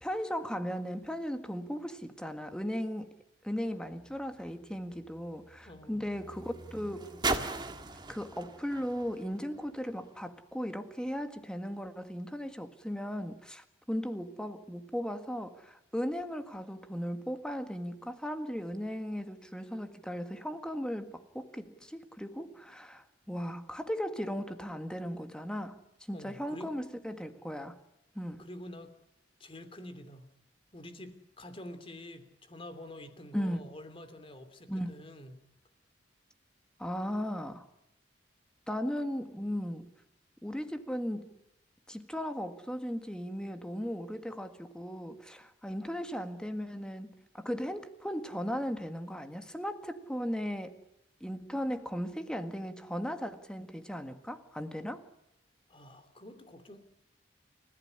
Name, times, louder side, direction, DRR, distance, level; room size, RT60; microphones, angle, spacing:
voice 1, 0.0-3.1 3.4-7.2 8.1-25.8 26.1-27.8 28.1-28.5 33.3-33.6 34.7-34.9 36.8-37.7 38.7-39.9 40.4-41.3 41.9-50.8 51.2-55.0, equal, 5° left, 1.7 m, -37 dB
sound 1, 3.7-10.2 11.0-11.1, right 3 dB, 25° right, 1.8 m, -39 dB
voice 2, 5.6-6.0 26.1-26.8 28.4-28.9 29.4-30.3 30.7-35.4 55.7-56.8, left 1 dB, 30° left, 3.0 m, -47 dB
29.5 x 15.5 x 10.0 m
head